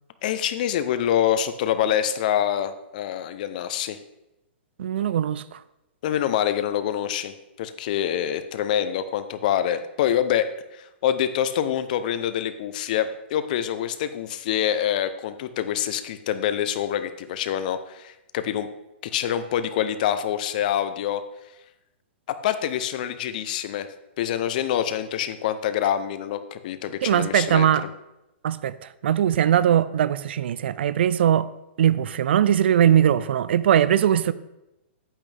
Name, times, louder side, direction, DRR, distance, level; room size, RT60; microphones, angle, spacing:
voice 1, 0.2-4.0 6.0-18.7 19.1-21.2 22.3-23.9 24.2-27.7, left 10 dB, 45° left, 0.6 m, -26 dB
voice 2, 4.8-5.6 27.0-27.8 28.4-28.7 29.0-31.5 31.8-34.3, right 10 dB, 65° right, 0.4 m, -20 dB
8.8 x 8.5 x 3.4 m
hypercardioid pair, 165°, 6 cm